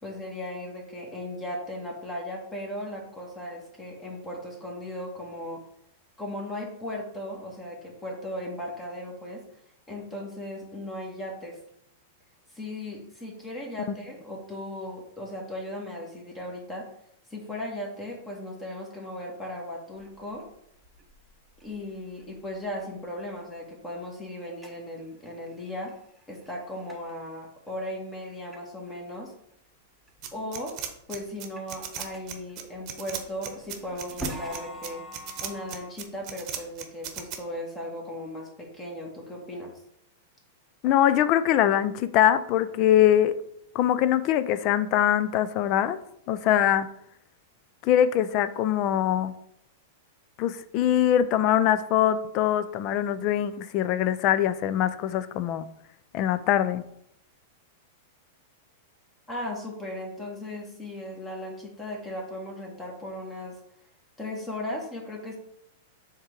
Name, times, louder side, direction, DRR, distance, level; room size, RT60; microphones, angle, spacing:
voice 1, 0.0-5.6 6.2-9.4 9.9-11.6 12.5-16.9 17.3-20.4 21.6-25.9 26.3-29.3 30.3-30.8 31.1-35.0 35.4-39.7 59.3-63.6 64.2-65.4, left 1 dB, 15° left, -1 dB, 1.7 m, -37 dB
sound 1, 20.0-23.5 23.9-24.1 24.6-24.9 25.2-27.1 27.7-27.8 28.5-28.6 28.9-29.0 29.5-29.6 30.0-30.7 31.1-35.9, left 1 dB, ahead, 1.2 m, -45 dB
sound 2, 30.2-37.4, right 9 dB, 40° right, 1.0 m, -37 dB
voice 2, 40.8-43.3 43.7-46.0 46.3-46.9 47.8-49.3 50.4-55.7 56.1-56.8, left 11 dB, 40° left, 13 dB, 0.5 m, -23 dB
7.2 x 3.7 x 4.7 m, 0.73 s
figure-of-eight pair, 95°, 0 cm